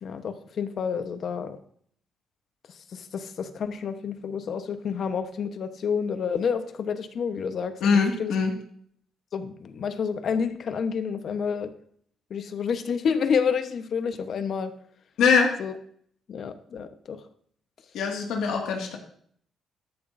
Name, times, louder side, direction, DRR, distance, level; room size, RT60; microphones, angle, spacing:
voice 1, 0.0-1.6 2.9-8.3 9.3-11.7 12.3-14.7 15.6-15.7 16.3-17.2, left 6 dB, 60° left, 9 dB, 1.0 m, -29 dB
voice 2, 7.8-8.5 15.2-15.6 17.9-19.0, left 5 dB, 85° left, 2 dB, 2.0 m, -22 dB
14.0 x 11.0 x 2.7 m, 0.62 s
cardioid pair, 90°, 0 cm